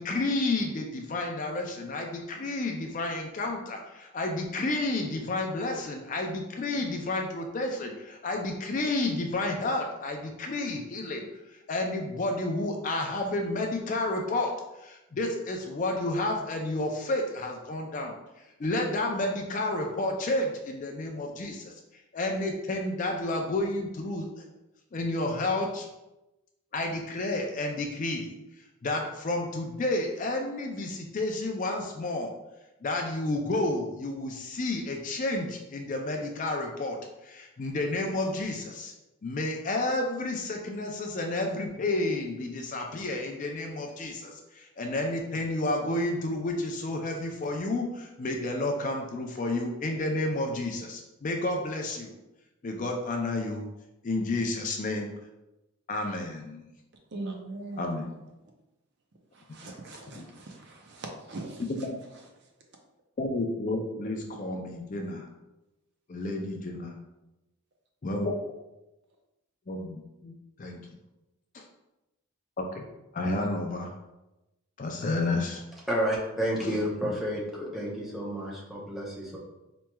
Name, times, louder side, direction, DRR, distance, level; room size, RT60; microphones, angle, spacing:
voice 1, 0.0-14.5 14.8-18.1 18.6-24.4 24.9-25.9 26.7-28.3 28.8-32.3 32.8-37.0 37.2-38.9 39.2-52.1 52.6-53.7 54.0-55.1 55.9-56.6 57.8-58.1 61.7-62.0 63.2-65.3 66.1-66.9 68.0-68.3 69.7-70.8 72.6-72.9 73.1-73.9 74.8-75.6 76.6-76.7, left 2 dB, 35° left, 2 dB, 0.3 m, -31 dB
voice 2, 57.1-58.1 59.3-61.9, right 2 dB, 50° right, 1 dB, 0.5 m, -40 dB
voice 3, 75.9-79.4, equal, ahead, -5 dB, 0.6 m, -30 dB
4.4 x 3.0 x 2.2 m, 0.97 s
head